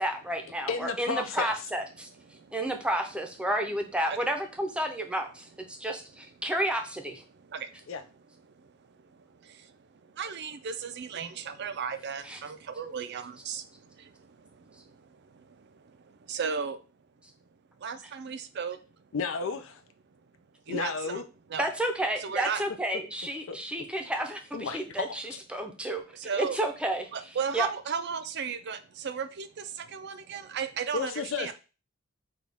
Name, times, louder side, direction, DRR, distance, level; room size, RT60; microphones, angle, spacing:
voice 1, 0.0-2.1 2.5-7.2 12.2-12.4 21.6-26.0 26.4-27.1 27.5-27.7, right 1 dB, 5° right, 4 dB, 0.6 m, -31 dB
voice 2, 0.7-1.5 7.9-8.0 19.1-19.8 20.7-21.2 23.5-23.6 24.5-25.2 30.9-31.5, left 5 dB, 65° left, 9 dB, 0.4 m, -32 dB
voice 3, 7.4-7.9 8.6-16.8 17.8-18.8 20.7-21.2 21.5-21.6 22.2-22.6 26.1-26.6 27.1-31.5, right 6 dB, 55° right, 10 dB, 0.5 m, -36 dB
6.2 x 2.4 x 3.4 m, 0.32 s
head